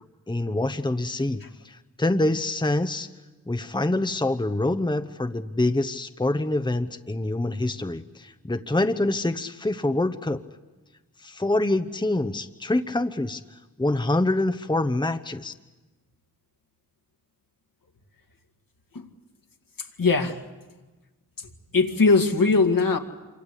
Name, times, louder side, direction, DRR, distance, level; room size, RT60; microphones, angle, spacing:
voice 1, 0.3-3.1 3.5-10.4 11.2-13.4 13.8-15.5, left 2 dB, 15° left, 1.0 m, -25 dB
voice 2, 19.8-20.4 21.4-23.0, left 4 dB, 70° left, 2.2 m, -21 dB
26.5 x 25.0 x 8.3 m
cardioid pair, 45°, 35 cm